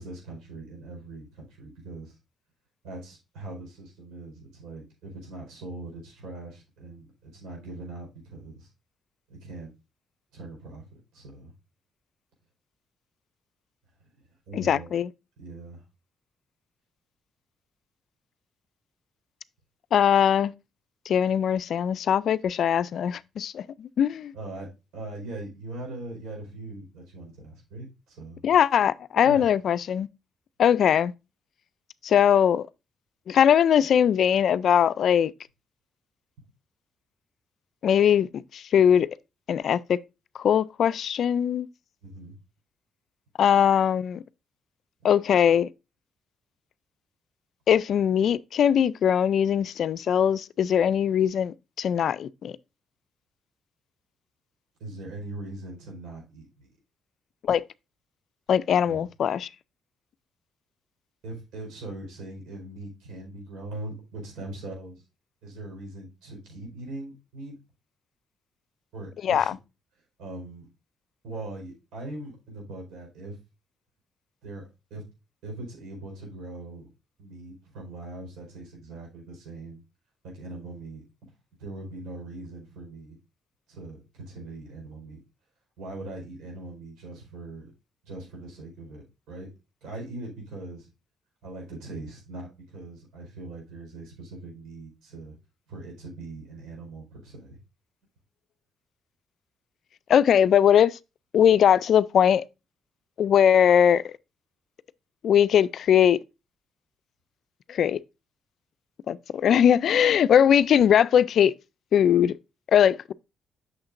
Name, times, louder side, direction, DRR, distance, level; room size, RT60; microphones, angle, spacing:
voice 1, 0.0-2.2 2.8-8.7 9.3-9.7 10.3-11.5 14.5-14.9 15.4-15.8 24.3-28.4 29.2-29.5 42.0-42.4 54.8-56.7 58.9-59.1 61.2-65.0 65.4-67.6 68.9-69.6 70.2-70.7 71.2-73.4 74.4-74.6 74.9-75.0 75.4-76.9 77.2-79.8 80.2-81.0 81.6-83.2 83.7-85.2 85.8-87.7 88.0-89.5 89.8-90.9 91.4-95.4 95.7-97.6, right 2 dB, 90° right, 4.4 m, -41 dB
voice 2, 14.5-15.1 19.9-20.5 21.1-24.3 28.4-30.1 30.6-31.1 32.0-32.6 33.3-35.3 37.8-39.1 39.5-40.0 40.4-41.7 43.4-44.2 45.0-45.7 47.7-52.5 57.5-57.6 58.5-59.5 69.2-69.6 100.1-101.0 101.3-102.4 103.2-104.1 105.2-106.2 107.7-108.0 109.1-111.5 111.9-112.4 112.7-113.1, left 9 dB, 65° left, 0.3 m, -21 dB
8.7 x 6.4 x 2.5 m
cardioid pair, 90°, 0 cm